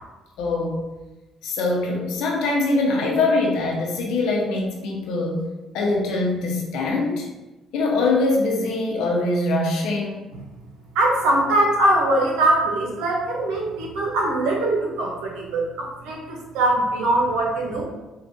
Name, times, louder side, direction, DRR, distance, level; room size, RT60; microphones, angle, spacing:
voice 1, 0.4-0.8 1.4-5.5 5.7-7.3 7.7-10.2, left 2 dB, 85° left, -1 dB, 0.8 m, -23 dB
voice 2, 10.9-17.8, right 1 dB, 90° right, -1 dB, 0.8 m, -22 dB
4.5 x 2.5 x 2.7 m, 1.1 s
cardioid pair, 95°, 0 cm